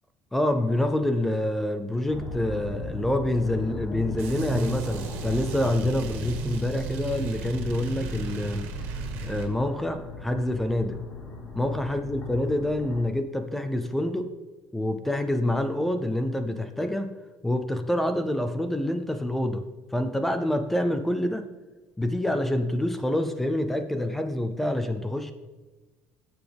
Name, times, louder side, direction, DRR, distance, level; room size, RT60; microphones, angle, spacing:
voice 1, 0.3-8.7 9.2-11.0 11.5-14.3 14.7-17.1 17.4-19.6 19.9-21.5 22.0-25.3, left 1 dB, 5° left, 8 dB, 0.5 m, -27 dB
sound 1, 2.1-13.1, left 3 dB, 30° left, 2.1 m, -38 dB
sound 2, 4.2-9.5, right 5 dB, 65° right, 1.9 m, -34 dB
17.0 x 7.1 x 3.5 m, 1.2 s
cardioid pair, 165°, 4 cm